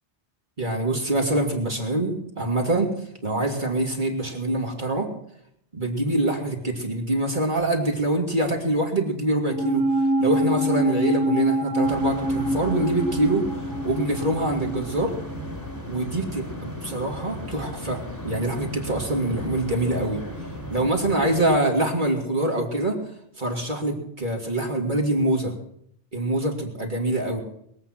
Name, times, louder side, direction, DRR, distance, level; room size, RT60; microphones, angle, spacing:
voice 1, 0.6-2.9 3.2-5.1 5.7-9.9 10.2-13.5 13.8-15.1 15.9-20.2 20.7-23.0 23.4-25.5 26.1-27.4, right 1 dB, 45° right, 0 dB, 2.6 m, -25 dB
sound 1, 9.5-16.0 16.3-16.4, equal, 90° right, 2.4 m, -26 dB
sound 2, 11.8-21.6, equal, 15° left, 2.3 m, -36 dB
22.0 x 8.3 x 5.9 m, 0.72 s
omnidirectional pair, 1.2 m